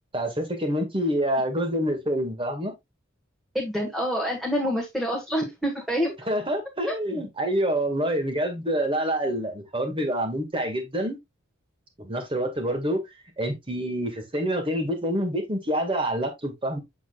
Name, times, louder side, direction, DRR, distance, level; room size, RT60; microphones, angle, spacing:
voice 1, 0.1-2.7 6.3-11.2 12.0-13.0 13.4-16.8, right 1 dB, 25° right, 1.9 m, -27 dB
voice 2, 3.5-6.1 6.9-7.0, equal, ahead, 1.7 m, -27 dB
7.3 x 6.5 x 2.4 m
head